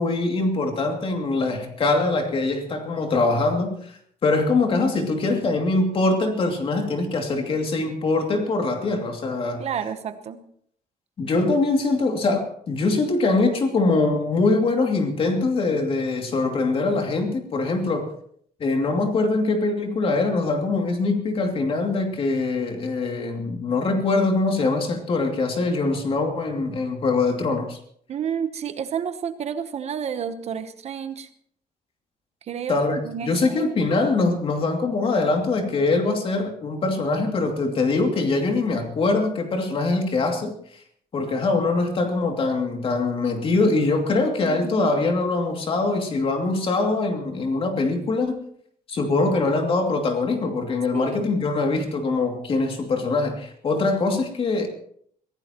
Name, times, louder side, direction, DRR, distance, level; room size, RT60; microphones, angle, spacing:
voice 1, 0.0-9.7 11.2-18.1 18.6-27.8 32.7-40.8 41.1-48.4 48.9-54.7, left 3 dB, 40° left, 3 dB, 2.7 m, -23 dB
voice 2, 9.6-10.4 28.1-31.3 32.5-33.6 44.4-44.9 50.9-51.3, right 7 dB, 45° right, 10 dB, 1.0 m, -30 dB
22.5 x 16.5 x 3.0 m, 0.64 s
cardioid pair, 165°, 15 cm